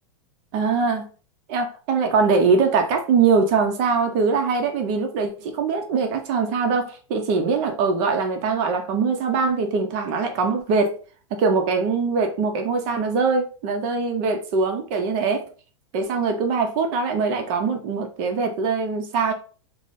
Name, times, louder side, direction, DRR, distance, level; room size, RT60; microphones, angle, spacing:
voice 1, 0.5-1.1 1.5-11.0 11.3-15.4 15.9-19.3, right 4 dB, 45° right, 5 dB, 0.6 m, -22 dB
3.7 x 2.0 x 2.6 m, 0.38 s
hypercardioid pair, 135°, 16 cm